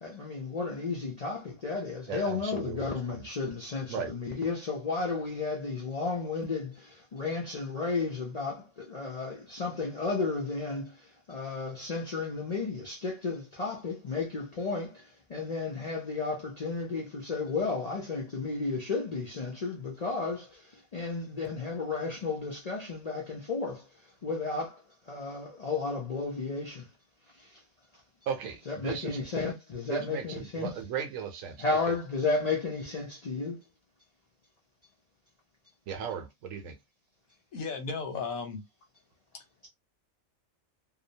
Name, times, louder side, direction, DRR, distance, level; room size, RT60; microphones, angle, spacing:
voice 1, 0.0-26.9 27.3-27.6 28.7-30.7 31.6-33.6, left 4 dB, 55° left, 0.4 m, -33 dB
voice 2, 2.1-3.2 3.9-4.1 28.3-29.2 29.9-31.6 35.9-36.8, right 7 dB, 75° right, 1.0 m, -36 dB
voice 3, 37.5-38.6, left 4 dB, 85° left, 1.2 m, -35 dB
2.8 x 2.0 x 2.6 m
omnidirectional pair, 1.4 m